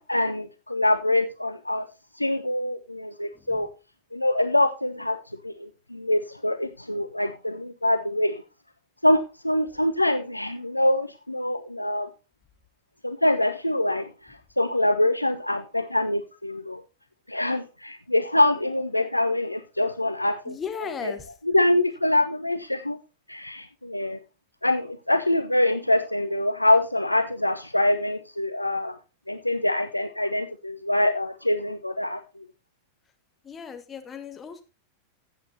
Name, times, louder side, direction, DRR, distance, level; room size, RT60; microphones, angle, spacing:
voice 1, 0.0-1.8 2.2-3.7 4.1-5.2 5.4-8.4 9.0-12.1 13.0-16.8 17.3-20.6 21.5-23.0 23.3-24.2 24.6-29.0 29.3-32.4, left 1 dB, 85° left, 0.4 m, -24 dB
voice 2, 3.3-3.7 9.7-9.9 20.5-21.3 33.4-34.6, left 7 dB, 20° left, 1.4 m, -37 dB
14.0 x 8.1 x 2.7 m
figure-of-eight pair, 90°, 0 cm